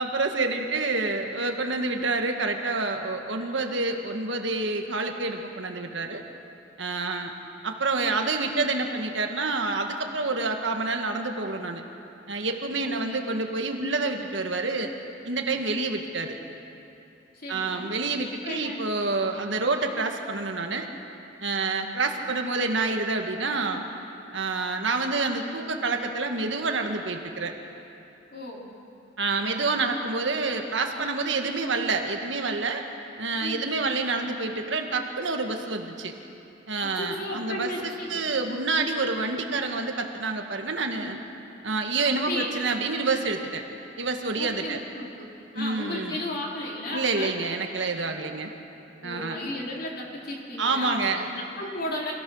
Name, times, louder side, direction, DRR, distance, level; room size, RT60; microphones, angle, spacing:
voice 1, 0.0-6.2 6.8-7.3 7.6-11.8 12.3-14.9 15.3-16.4 17.5-20.9 21.4-23.8 24.3-27.5 29.2-32.8 33.2-36.1 36.7-41.2 41.6-43.6 44.0-44.8 45.5-46.2 46.9-48.5 49.0-49.4 50.6-51.3, right 3 dB, 70° right, 4 dB, 1.7 m, -28 dB
voice 2, 12.7-13.1 17.3-17.9 18.4-19.1 28.3-28.7 33.4-33.7 36.8-38.3 42.2-42.5 44.4-47.3 49.0-52.1, left 1 dB, 55° left, -2 dB, 3.5 m, -35 dB
26.5 x 16.0 x 6.4 m, 2.9 s
head